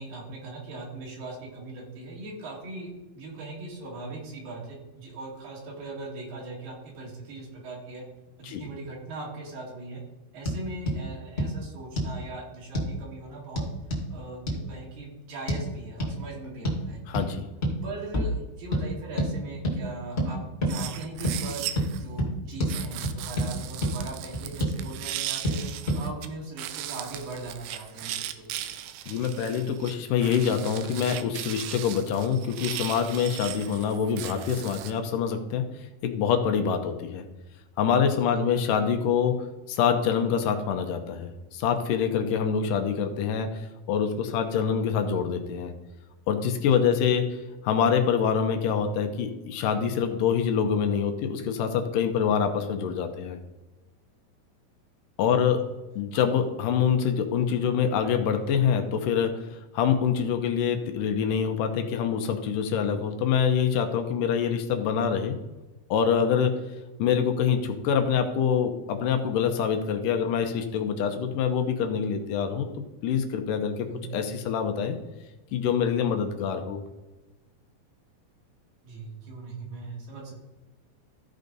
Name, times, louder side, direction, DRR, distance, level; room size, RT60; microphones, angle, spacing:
voice 1, 0.0-8.0 8.4-10.0 10.3-13.6 14.1-17.0 17.8-20.4 20.6-25.7 25.9-28.5 38.2-38.4 46.8-47.0 55.2-55.6 73.9-74.1 78.8-80.4, right 2 dB, 70° right, -3 dB, 3.9 m, -40 dB
sound 1, 10.4-10.6 10.9-11.0 11.4-11.5 12.0-12.2 12.7-12.9 13.6-14.1 14.5-14.6 15.5-15.6 16.0-16.1 16.6-16.8 17.1-17.3 17.6-17.8 18.1-18.3 18.7-18.8 19.2-19.3 19.6-19.8 20.2-20.3 20.6-20.8 21.2-21.4 21.8-21.9 22.2-22.3 22.6-22.7 23.0-23.5 23.8-23.9 24.3-24.8 25.4-25.6 25.9-26.0, equal, 25° left, 1.5 m, -27 dB
voice 2, 17.1-17.5 29.1-35.6 36.0-37.2 37.8-43.6 43.9-45.7 46.3-47.3 47.6-53.4 55.2-55.6 56.0-59.4 59.7-65.4 65.9-66.6 67.0-72.7 73.0-75.0 75.5-76.8, left 7 dB, 75° left, 6 dB, 2.3 m, -25 dB
sound 2, 20.7-22.0 22.7-26.3 26.6-34.9, right 12 dB, 85° right, 2.5 m, -37 dB
14.5 x 5.1 x 4.0 m, 1.1 s
omnidirectional pair, 4.3 m